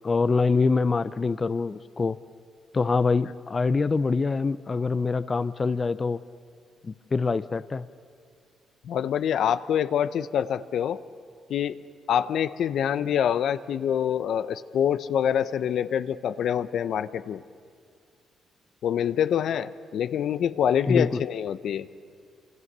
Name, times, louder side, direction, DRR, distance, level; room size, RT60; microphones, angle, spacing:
voice 1, 0.0-2.2 2.7-6.2 6.8-7.9 20.9-21.2, left 4 dB, 30° left, 14 dB, 0.6 m, -25 dB
voice 2, 8.8-11.0 11.5-11.8 12.1-17.4 18.8-21.9, left 9 dB, 70° left, 12 dB, 0.8 m, -26 dB
27.5 x 26.0 x 6.8 m, 2.2 s
cardioid pair, 90°, 0 cm